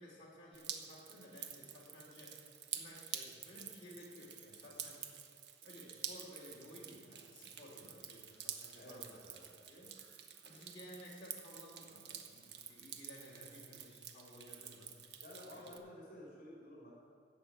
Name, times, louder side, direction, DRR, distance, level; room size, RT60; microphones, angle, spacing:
voice 1, 0.0-5.1 5.6-9.2 9.7-9.9 10.4-14.9 15.5-15.7, left 1 dB, 30° left, -6 dB, 3.1 m, -56 dB
Drip, 0.5-15.8, right 8 dB, 75° right, 0.9 m, -49 dB
voice 2, 8.7-9.5 15.2-16.9, left 1 dB, 50° left, -4 dB, 2.8 m, -53 dB
14.0 x 5.5 x 8.6 m, 2.4 s
head